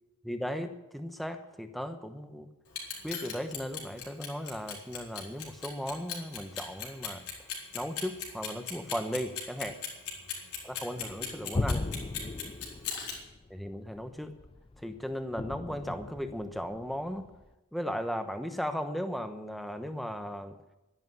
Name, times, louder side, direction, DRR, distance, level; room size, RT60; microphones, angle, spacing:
voice 1, 0.2-2.5 3.0-7.2 7.7-9.8 10.6-11.9 13.5-14.3 14.8-17.3 17.7-20.6, equal, ahead, 7 dB, 1.1 m, -36 dB
Clock, 2.7-13.1, left 8 dB, 80° left, 4.4 m, -37 dB
sound 1, 11.0-17.5, left 2 dB, 25° left, 0.4 m, -37 dB
12.0 x 11.0 x 9.2 m, 0.97 s
head